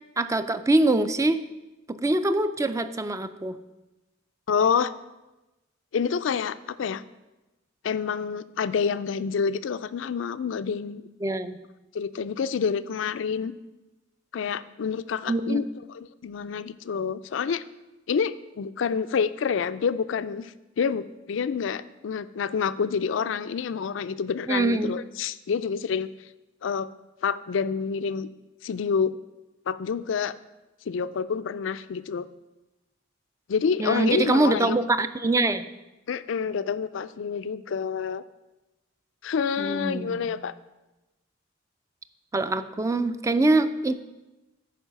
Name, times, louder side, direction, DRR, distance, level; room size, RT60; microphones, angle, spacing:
voice 1, 0.2-1.4 1.9-3.6 11.2-11.6 15.3-15.6 24.5-24.9 33.8-35.6 39.6-40.4 42.3-43.9, right 2 dB, 15° right, 12 dB, 0.4 m, -24 dB
voice 2, 4.5-4.9 5.9-7.0 7.8-11.0 11.9-13.5 14.3-17.6 18.1-26.1 26.6-26.9 27.2-28.3 28.6-29.1 29.7-30.3 30.9-32.3 33.5-34.8 36.1-38.2 39.2-40.5, left 6 dB, 70° left, 15 dB, 0.4 m, -28 dB
10.0 x 4.7 x 5.8 m, 1.0 s
head